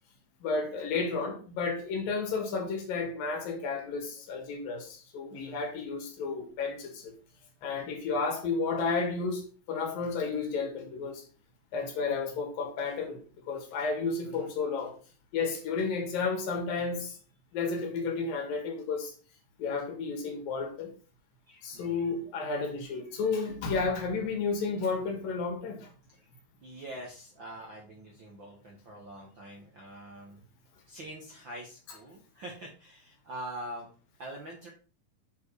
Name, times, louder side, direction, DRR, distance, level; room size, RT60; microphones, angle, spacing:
voice 1, 0.4-7.1 7.6-11.2 11.7-13.2 13.5-14.9 15.3-17.2 17.5-19.1 19.6-20.9 21.6-25.9, left 4 dB, 80° left, 3.5 m, -32 dB
voice 2, 5.3-5.6 13.6-13.8 14.2-14.5 21.5-22.1 22.9-23.5 24.7-24.8 26.1-26.3 26.6-30.4 30.9-33.9 34.2-34.7, right 1 dB, 55° right, 1.3 m, -45 dB
8.3 x 4.5 x 4.8 m
omnidirectional pair, 4.0 m